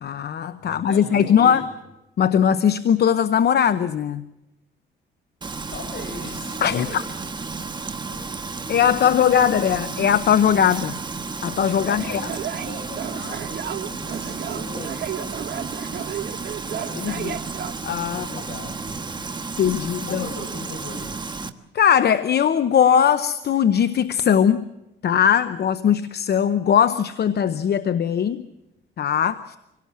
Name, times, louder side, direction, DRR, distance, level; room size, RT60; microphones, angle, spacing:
voice 1, 0.0-1.6 2.2-4.2 6.6-7.0 8.7-10.9 11.4-12.2 16.9-17.4 17.8-18.3 19.6-20.2 21.7-24.7 25.0-28.5 29.0-29.6, left 8 dB, 55° left, 0.8 m, -20 dB
voice 2, 0.6-1.7 5.7-7.1 8.1-8.5 11.8-17.2 18.0-19.3 20.0-21.2, left 2 dB, 70° left, 7.6 m, -39 dB
Frying (food), 5.4-21.5, right 4 dB, 20° right, 1.4 m, -32 dB
sound 1, 12.0-17.7, right 10 dB, 55° right, 1.1 m, -33 dB
25.5 x 18.0 x 7.3 m
cardioid pair, 90°, 20 cm